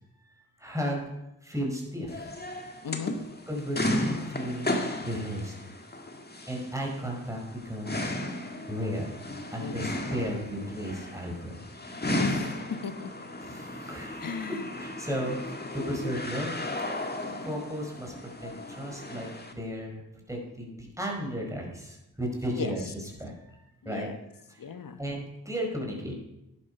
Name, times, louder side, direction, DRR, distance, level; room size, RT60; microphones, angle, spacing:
voice 1, 0.6-1.0 1.4-2.3 3.5-4.6 5.0-5.5 6.5-8.1 8.7-9.2 9.5-11.5 13.4-14.5 14.7-15.4 15.7-16.5 17.4-18.1 18.4-20.0 20.3-22.8 23.2-23.5 23.8-24.6 25.0-26.1, equal, 10° right, 0 dB, 5.0 m, -34 dB
sound 1, 2.1-19.5, left 1 dB, 25° left, 1.9 m, -35 dB
voice 2, 2.8-3.1 9.6-10.0 12.1-12.5 12.8-13.3 14.2-14.7 22.6-22.7 23.8-24.2 24.6-25.0, left 6 dB, 60° left, 9 dB, 1.3 m, -35 dB
11.0 x 10.5 x 5.5 m, 0.88 s
cardioid pair, 50°, 38 cm